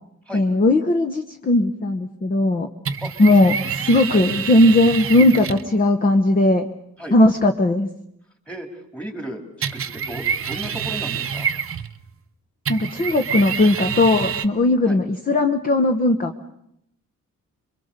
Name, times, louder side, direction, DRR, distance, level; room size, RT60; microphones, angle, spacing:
voice 1, 0.3-2.7 3.2-3.5 3.9-6.7 7.1-7.9 12.7-16.3, left 1 dB, 25° left, 6 dB, 1.0 m, -17 dB
sound 1, 2.9-5.7 9.6-12.1 12.7-14.5, right 7 dB, 45° right, 1.0 m, -27 dB
voice 2, 3.0-3.7 4.1-4.3 7.0-7.2 8.5-11.5 14.9-15.0, equal, 5° left, 5 dB, 3.1 m, -35 dB
27.5 x 23.5 x 6.7 m, 0.77 s
wide cardioid pair, 165°, 32 cm